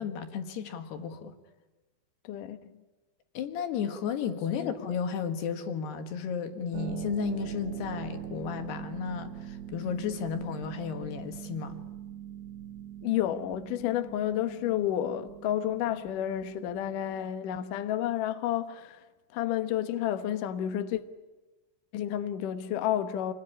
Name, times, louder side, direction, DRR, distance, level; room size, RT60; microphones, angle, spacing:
voice 1, 0.0-1.3 3.3-11.8, left 7 dB, 65° left, 3.2 m, -33 dB
voice 2, 2.2-2.7 4.5-4.7 13.0-19.0 19.3-21.0 21.9-23.3, left 11 dB, 85° left, 1.8 m, -30 dB
Harp, 6.7-17.3, right 11 dB, 70° right, 2.6 m, -42 dB
27.5 x 21.5 x 9.9 m
omnidirectional pair, 5.7 m